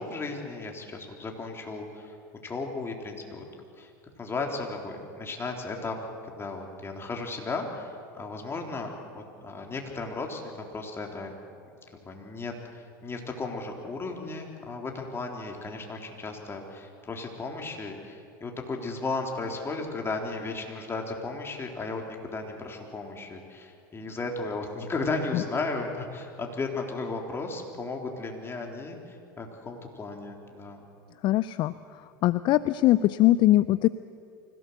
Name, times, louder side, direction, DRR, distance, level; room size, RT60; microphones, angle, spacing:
voice 1, 0.0-2.2 2.4-3.4 3.8-3.9 4.2-6.0 6.2-11.3 12.1-30.8, left 3 dB, 20° left, 2 dB, 3.8 m, -35 dB
voice 2, 31.2-31.7 32.2-33.9, left 15 dB, 45° left, 16 dB, 0.5 m, -21 dB
25.0 x 17.0 x 8.1 m, 2.4 s
hypercardioid pair, 85°, 11 cm